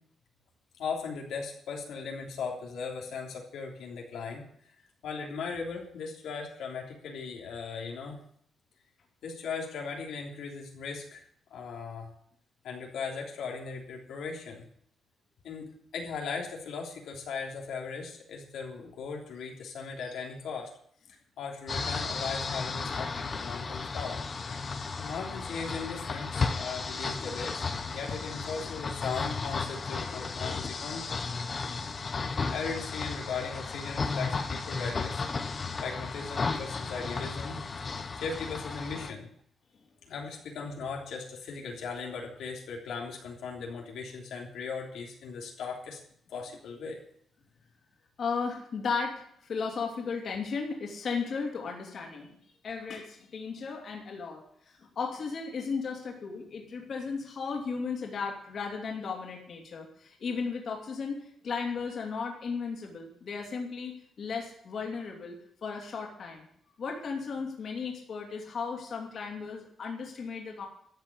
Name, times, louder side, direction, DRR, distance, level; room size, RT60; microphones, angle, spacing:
voice 1, 0.8-4.4 5.0-8.2 9.2-11.2 11.5-12.1 12.6-14.7 15.4-20.7 21.4-24.2 25.0-31.2 32.2-35.2 35.8-37.6 38.2-39.3 40.1-46.0 46.3-47.0, left 5 dB, 85° left, 0 dB, 3.3 m, -38 dB
sound 1, 21.7-39.1, left 4 dB, 30° left, 0.9 m, -34 dB
voice 2, 48.2-52.3 52.6-66.5 66.8-70.7, left 5 dB, 45° left, 0 dB, 2.9 m, -35 dB
13.5 x 7.5 x 8.6 m, 0.66 s
wide cardioid pair, 170°, 0 cm